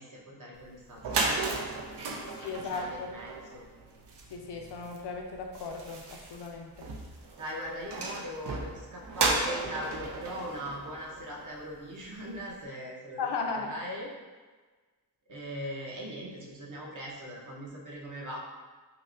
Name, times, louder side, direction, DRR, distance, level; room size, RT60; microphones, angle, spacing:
voice 1, 0.0-1.6 1.9-3.6 7.4-13.3 13.5-14.1 15.3-18.4, equal, 50° right, -3 dB, 0.8 m, -40 dB
sound 1, 0.6-0.7 0.9-11.7, right 3 dB, 85° right, 0.6 m, -35 dB
voice 2, 2.3-3.1 4.3-6.9 13.2-13.7, left 4 dB, 85° left, 2 dB, 0.6 m, -36 dB
5.7 x 2.1 x 2.6 m, 1.4 s
wide cardioid pair, 180°, 40 cm